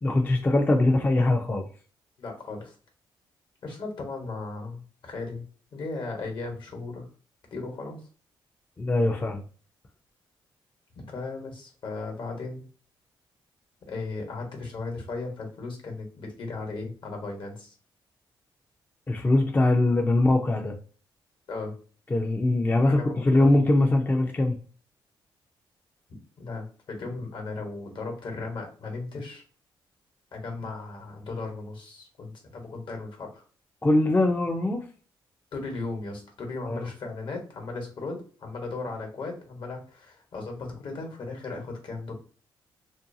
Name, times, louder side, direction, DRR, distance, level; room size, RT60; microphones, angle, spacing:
voice 1, 0.0-1.7 8.8-9.4 19.1-20.8 22.1-24.6 33.8-34.8 36.7-36.9, left 2 dB, 20° left, 2 dB, 0.4 m, -22 dB
voice 2, 2.2-2.7 3.6-5.4 5.7-7.0 7.5-8.0 11.0-12.7 13.9-17.7 21.5-21.7 22.9-23.6 26.4-29.4 30.3-33.4 35.5-42.1, left 3 dB, 60° left, 2 dB, 1.1 m, -36 dB
2.6 x 2.2 x 2.6 m, 0.39 s
cardioid pair, 80°, 9 cm